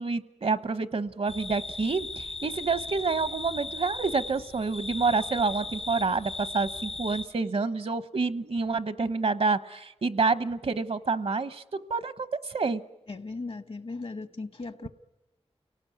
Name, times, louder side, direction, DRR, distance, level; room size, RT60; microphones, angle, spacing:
voice 1, 0.0-11.6 11.9-12.8, right 4 dB, 70° right, 14 dB, 0.9 m, -28 dB
sound 1, 1.3-7.2, left 3 dB, 85° left, 3.0 m, -37 dB
voice 2, 13.1-14.9, left 3 dB, 60° left, 12 dB, 1.0 m, -37 dB
29.5 x 18.5 x 9.3 m, 1.1 s
wide cardioid pair, 60°, 11 cm